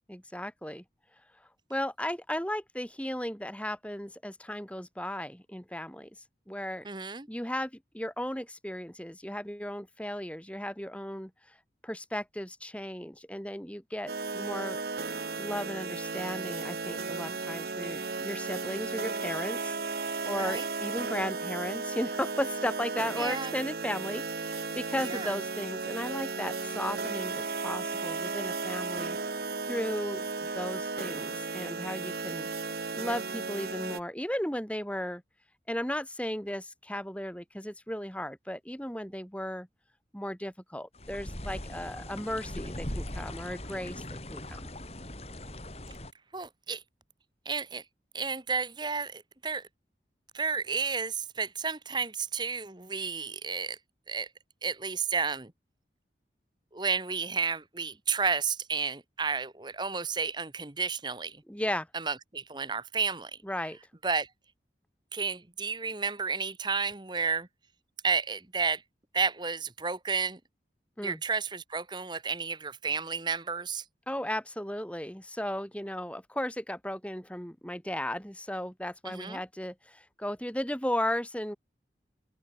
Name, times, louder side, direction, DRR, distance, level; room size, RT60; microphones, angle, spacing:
voice 1, 0.1-0.8 1.7-6.1 6.5-6.9 7.3-11.3 11.8-14.8 15.4-29.2 29.7-35.2 35.7-39.7 40.1-44.6 61.5-61.9 63.4-63.8 71.0-71.2 74.1-81.6, left 1 dB, 5° left, 5.1 m, -35 dB
voice 2, 6.8-7.3 20.4-20.7 23.2-23.5 25.1-25.4 46.3-46.8 47.4-47.8 48.1-49.7 50.3-53.8 54.1-54.3 54.6-55.5 56.7-61.4 61.9-63.4 64.0-64.3 65.1-67.5 68.0-68.8 69.1-70.4 71.0-73.8 79.0-79.4, right 5 dB, 25° right, 1.2 m, -32 dB
sound 1, 14.1-34.0, right 4 dB, 60° right, 1.1 m, -35 dB
sound 2, 40.9-46.1, left 1 dB, 35° left, 6.1 m, -40 dB
open air
head